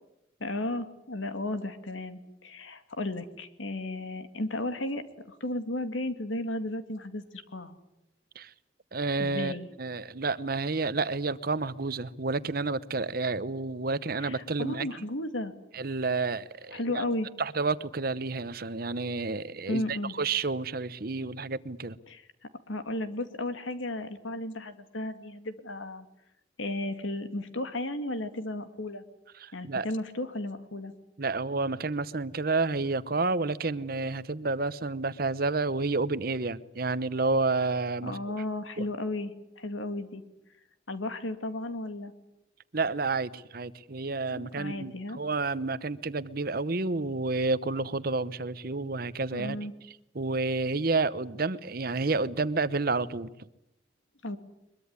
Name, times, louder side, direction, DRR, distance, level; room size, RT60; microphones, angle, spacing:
voice 1, 0.4-7.2 7.5-7.8 9.2-9.7 14.2-15.5 16.7-17.3 19.7-20.1 22.1-22.2 22.7-26.1 26.6-29.0 29.5-30.9 38.0-40.2 40.9-42.1 44.3-45.2 49.3-49.7 54.2-54.4, left 1 dB, 90° left, 2.3 m, -34 dB
voice 2, 8.9-9.5 9.8-14.9 15.7-16.8 17.4-22.0 29.4-29.9 31.2-38.2 38.8-38.9 42.7-49.6 50.1-53.3, right 3 dB, 50° right, 0.9 m, -30 dB
23.0 x 22.5 x 9.7 m
head